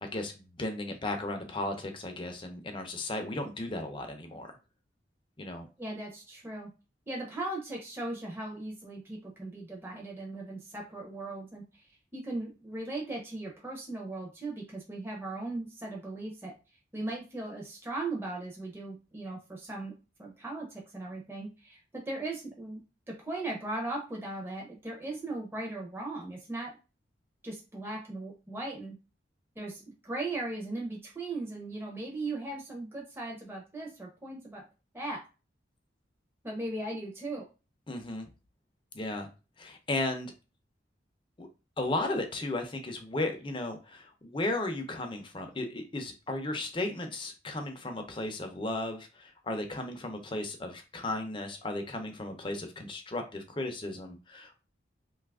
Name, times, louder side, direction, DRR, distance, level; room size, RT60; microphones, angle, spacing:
voice 1, 0.0-4.6 5.4-5.7 37.9-38.3 38.9-39.3 39.6-40.3 41.4-41.5 41.8-54.6, left 2 dB, 25° left, 5 dB, 0.5 m, -35 dB
voice 2, 5.8-6.7 7.1-11.9 12.1-16.5 16.9-19.9 20.2-26.8 27.4-28.9 29.6-34.6 34.9-35.2 36.4-37.4, right 2 dB, 15° right, -1 dB, 0.7 m, -38 dB
2.7 x 2.4 x 3.5 m, 0.31 s
head